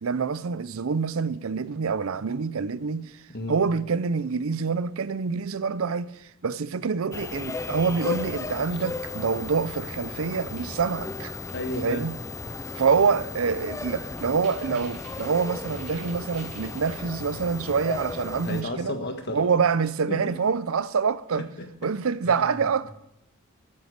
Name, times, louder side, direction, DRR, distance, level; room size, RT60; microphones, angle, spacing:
voice 1, 0.0-3.2 3.5-11.3 11.8-12.2 12.7-18.9 19.3-21.5 21.8-22.9, right 5 dB, 70° right, 0.5 m, -26 dB
sound 1, 7.1-18.6, left 3 dB, 15° left, 0.4 m, -35 dB
sound 2, 10.6-10.7 11.5-11.8 13.5-13.6 13.9-14.0 14.2-16.9, right 4 dB, 45° right, 4.1 m, -48 dB
voice 2, 11.5-12.0 18.4-19.5 20.1-20.2 21.3-21.7 22.2-22.6, left 1 dB, 50° left, 1.6 m, -33 dB
13.0 x 9.5 x 6.5 m
head